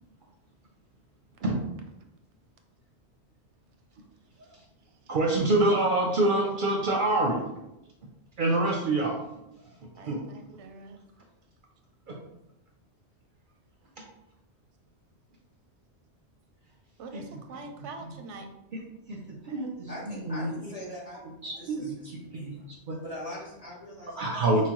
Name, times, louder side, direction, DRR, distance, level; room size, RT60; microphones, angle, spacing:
voice 1, 5.1-7.4 8.4-9.2 10.1-10.2 17.1-17.2 19.1-19.2 19.5-20.5 21.4-22.5 24.2-24.7, right 2 dB, 55° right, 0 dB, 0.6 m, -26 dB
voice 2, 10.0-11.0 17.0-18.5, right 3 dB, 85° right, 5 dB, 0.9 m, -44 dB
voice 3, 19.9-21.2 21.6-22.5 23.0-24.7, left 1 dB, 35° left, -5 dB, 1.0 m, -42 dB
5.7 x 2.2 x 3.0 m, 0.91 s
omnidirectional pair, 1.2 m